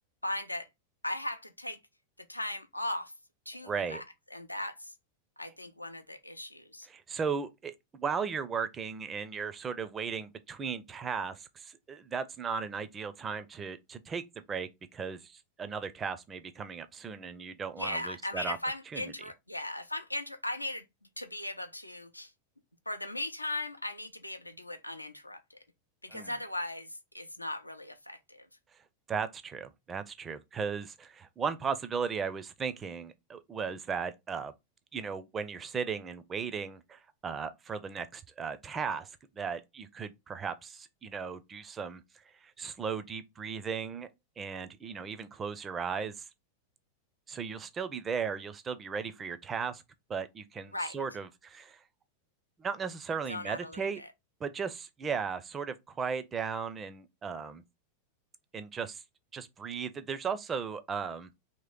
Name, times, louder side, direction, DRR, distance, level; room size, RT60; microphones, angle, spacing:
voice 1, 0.2-0.7 1.0-1.8 2.3-3.1 3.5-4.0 4.3-4.9 5.4-6.9 17.8-20.8 21.2-22.3 22.9-25.6 26.0-28.5 50.7-51.0 53.3-54.1, left 1 dB, 85° left, 0.5 m, -38 dB
voice 2, 3.6-4.0 6.9-15.3 15.6-18.6 18.9-19.1 26.1-26.3 29.1-34.5 34.9-39.1 39.4-42.0 42.6-44.1 44.4-46.1 47.3-49.8 50.1-51.8 52.6-54.0 54.4-57.6 58.5-59.0 59.3-61.3, right 6 dB, 20° right, 0.4 m, -36 dB
3.0 x 2.9 x 3.6 m
figure-of-eight pair, 90°, 0 cm